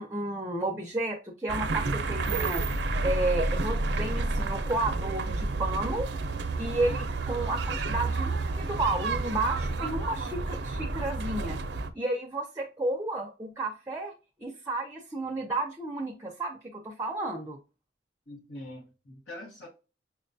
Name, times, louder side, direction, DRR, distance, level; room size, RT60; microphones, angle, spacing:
voice 1, 0.0-2.6 3.0-6.1 6.6-11.6 11.9-14.1 14.4-17.6, right 2 dB, 15° right, 0.5 m, -32 dB
sound 1, 1.5-11.9, right 3 dB, 75° right, 0.5 m, -30 dB
voice 2, 18.3-19.7, left 1 dB, 85° left, 1.0 m, -43 dB
5.9 x 2.2 x 2.5 m
head